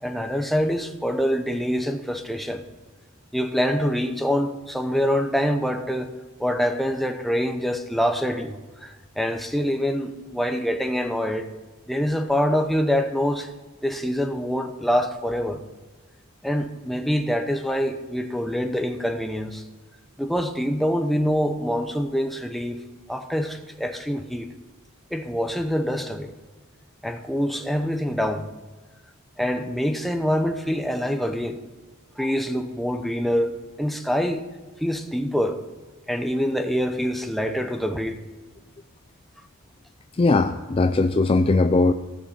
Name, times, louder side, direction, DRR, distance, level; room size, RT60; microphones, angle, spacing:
voice 1, 0.0-2.6 3.3-6.1 6.4-11.5 11.9-13.5 13.8-15.6 16.4-19.6 20.2-22.8 23.1-24.5 25.1-26.3 27.0-28.5 29.4-31.6 32.2-33.5 33.8-34.4 34.8-35.6 36.1-38.2, equal, ahead, 5 dB, 0.7 m, -25 dB
voice 2, 40.2-41.9, left 3 dB, 25° left, 8 dB, 0.3 m, -19 dB
16.5 x 6.5 x 5.7 m, 1.3 s
head